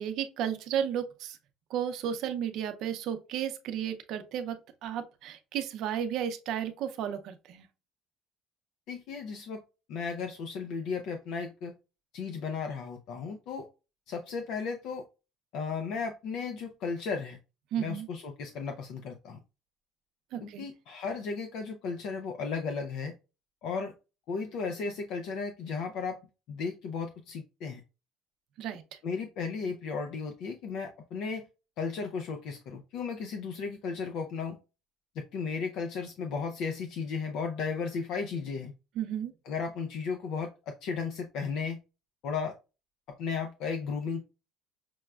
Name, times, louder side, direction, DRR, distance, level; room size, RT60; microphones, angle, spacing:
voice 1, 0.0-1.4 1.7-7.6 17.7-18.1 20.3-20.6 28.6-28.8 39.0-39.3, right 9 dB, 60° right, 0.6 m, -33 dB
voice 2, 8.9-9.6 9.9-11.7 12.1-13.7 14.1-15.0 15.5-17.4 17.8-19.4 20.4-23.1 23.6-23.9 24.3-26.2 26.5-27.8 29.0-31.5 31.8-34.6 35.2-38.7 39.5-41.8 42.2-42.5 43.2-44.2, left 5 dB, 60° left, 0.4 m, -35 dB
6.0 x 2.2 x 2.3 m
cardioid pair, 160°, 0 cm